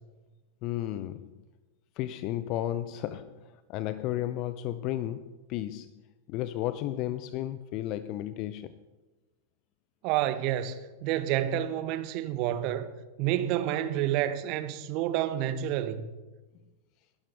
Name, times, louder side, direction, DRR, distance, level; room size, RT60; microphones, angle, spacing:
voice 1, 0.6-1.4 2.0-5.9 6.3-8.7, left 13 dB, 40° left, 0.5 m, -33 dB
voice 2, 10.0-12.9 13.2-16.1, right 12 dB, 45° right, 1.0 m, -29 dB
21.0 x 12.0 x 3.4 m
figure-of-eight pair, 90°, 0 cm